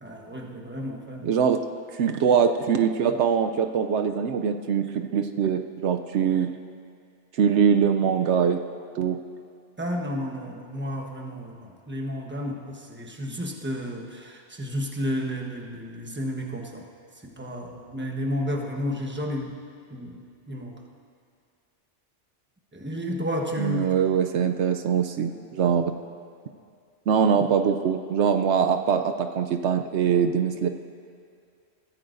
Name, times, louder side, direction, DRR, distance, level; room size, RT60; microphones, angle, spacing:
voice 1, 0.0-1.4 9.8-16.9 17.2-19.6 19.9-20.8 22.7-23.9, equal, 10° right, 1 dB, 1.0 m, -32 dB
voice 2, 1.2-1.6 1.9-6.5 7.3-8.6 8.9-9.2 23.6-25.9 27.1-30.7, right 7 dB, 75° right, 7 dB, 0.9 m, -23 dB
22.0 x 14.5 x 2.6 m, 2.2 s
omnidirectional pair, 1.2 m